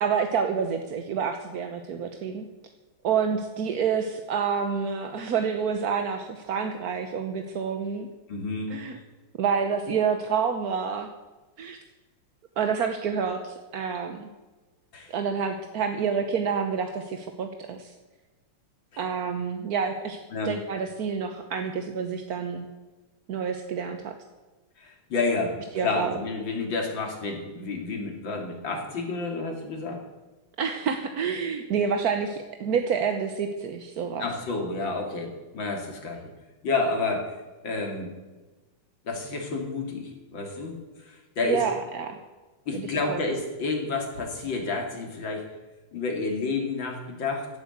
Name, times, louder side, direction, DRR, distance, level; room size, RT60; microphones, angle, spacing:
voice 1, 0.0-2.4 3.0-8.1 8.7-8.9 9.4-11.1 11.6-11.8 12.6-14.3 15.1-17.9 19.0-20.2 20.4-22.6 23.3-24.1 25.7-26.1 30.6-34.3 41.4-42.2 42.7-43.2, right 6 dB, 55° right, 6 dB, 1.2 m, -28 dB
voice 2, 8.3-8.7 14.9-15.1 18.9-19.0 20.3-20.6 24.8-30.0 34.2-36.3 36.6-37.4 37.6-38.1 39.0-41.6 42.7-45.4 45.9-47.5, left 3 dB, 60° left, 2 dB, 3.4 m, -30 dB
16.0 x 9.2 x 8.0 m, 1.2 s
omnidirectional pair, 2.4 m